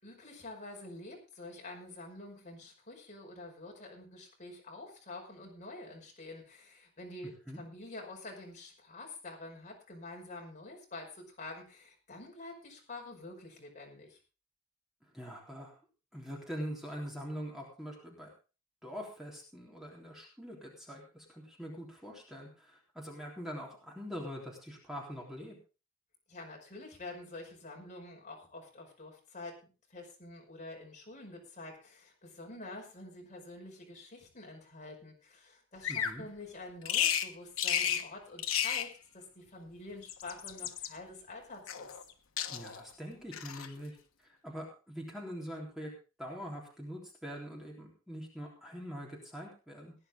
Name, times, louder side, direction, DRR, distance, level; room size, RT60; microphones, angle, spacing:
voice 1, 0.0-14.2 26.3-29.5 29.9-42.0, left 2 dB, 35° left, 0 dB, 5.4 m, -47 dB
voice 2, 15.0-15.7 16.1-18.3 18.8-25.6 35.9-36.3 42.5-44.0 44.2-45.9 46.2-49.9, equal, ahead, -2 dB, 3.7 m, -43 dB
Bird vocalization bird call bird song, 35.8-36.2 36.9-37.3 37.6-38.1 38.4-38.9 39.9-40.9 41.7-42.1 42.4-42.8 43.3-43.7, left 9 dB, 70° left, 1.3 m, -32 dB
19.0 x 10.5 x 3.8 m, 0.33 s
head